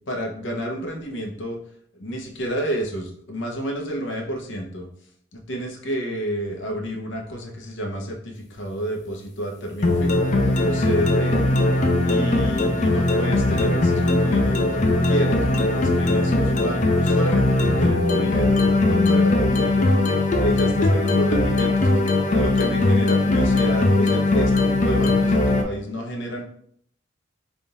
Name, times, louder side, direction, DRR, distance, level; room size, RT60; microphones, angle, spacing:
voice 1, 0.1-1.6 2.0-4.9 5.3-10.3 10.6-11.4 12.0-22.0 22.3-26.4, equal, 75° left, 2 dB, 0.8 m, -30 dB
sound 1, 9.8-25.6, left 2 dB, 40° left, 0.5 m, -20 dB
3.5 x 2.4 x 4.0 m, 0.64 s
head